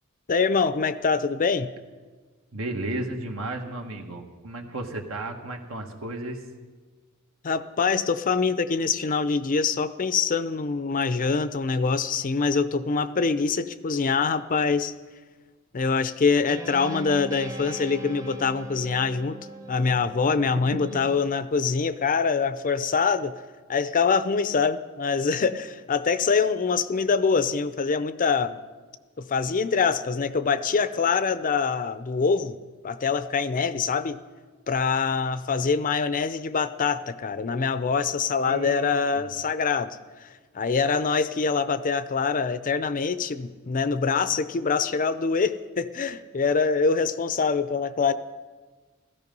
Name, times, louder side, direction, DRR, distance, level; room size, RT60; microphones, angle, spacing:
voice 1, 0.3-1.7 7.4-14.9 15.7-19.4 19.7-23.4 23.7-28.6 29.2-32.6 32.8-34.2 34.7-40.3 40.5-48.1, left 5 dB, 40° left, 0.5 m, -24 dB
voice 2, 2.5-6.5 20.7-20.8 38.4-39.3, right 2 dB, 75° right, 1.7 m, -34 dB
Guitar, 16.5-21.2, equal, 15° right, 0.9 m, -40 dB
15.5 x 14.0 x 5.4 m
head